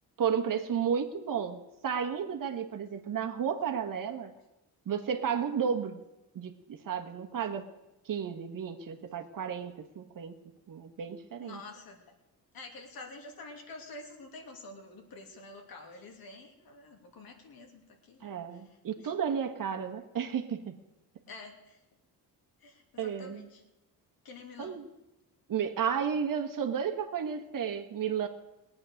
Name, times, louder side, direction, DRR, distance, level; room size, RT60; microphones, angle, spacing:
voice 1, 0.2-4.3 4.8-6.0 6.3-7.7 8.0-10.4 10.7-11.6 18.2-20.7 23.0-23.4 24.6-24.8 25.5-28.3, right 7 dB, 55° right, 6 dB, 1.5 m, -32 dB
voice 2, 11.4-12.1 12.5-19.1 21.3-21.8 22.6-23.6 24.2-24.8, left 3 dB, 65° left, 3 dB, 2.8 m, -48 dB
18.5 x 8.8 x 6.5 m, 0.97 s
cardioid pair, 85°, 38 cm